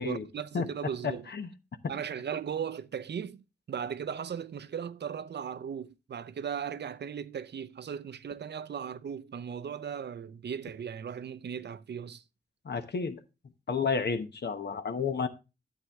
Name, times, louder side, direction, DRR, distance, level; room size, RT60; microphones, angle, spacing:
voice 1, 0.0-1.3 1.9-12.2, right 7 dB, 70° right, 0.5 m, -37 dB
voice 2, 1.0-1.5 12.6-13.2 13.7-15.3, left 5 dB, 70° left, 1.0 m, -31 dB
9.6 x 7.6 x 3.5 m
cardioid pair, 50°, 18 cm